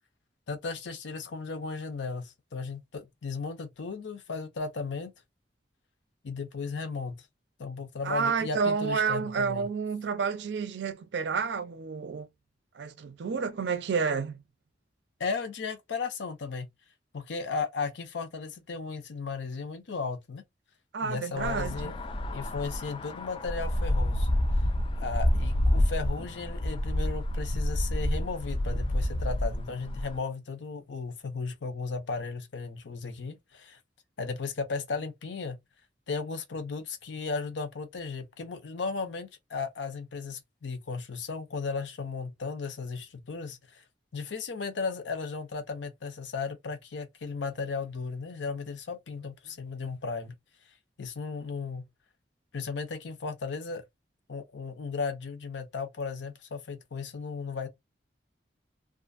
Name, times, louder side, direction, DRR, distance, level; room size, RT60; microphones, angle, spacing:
voice 1, 0.5-5.1 6.2-7.1 7.6-9.7 15.2-16.7 17.1-20.4 21.0-21.9 22.3-24.3 25.0-33.8 34.2-35.6 36.1-43.8 44.1-50.3 51.0-51.8 52.5-53.8 54.3-57.7, left 4 dB, 90° left, 0.6 m, -35 dB
voice 2, 8.0-12.3 12.7-14.4 20.9-21.9, right 5 dB, 75° right, 0.4 m, -30 dB
sound 1, 21.3-30.2, left 1 dB, 30° left, 0.3 m, -28 dB
2.5 x 2.4 x 2.4 m
head